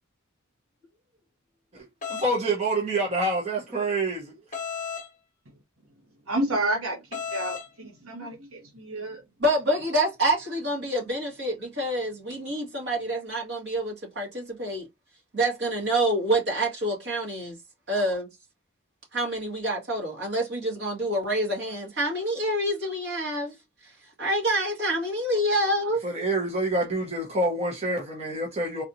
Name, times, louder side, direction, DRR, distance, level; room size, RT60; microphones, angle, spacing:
voice 1, 1.7-4.3 26.0-28.8, right 2 dB, 30° right, 1.0 m, -27 dB
sound 1, 2.0-2.3 4.5-5.1 7.1-7.7, left 6 dB, 35° left, 1.0 m, -33 dB
voice 2, 6.3-9.2, right 1 dB, 75° right, 1.3 m, -30 dB
voice 3, 9.4-14.9 15.3-17.6 17.9-18.2 19.1-23.5 24.2-26.0, right 1 dB, 55° right, 2.2 m, -27 dB
4.0 x 2.9 x 2.7 m
head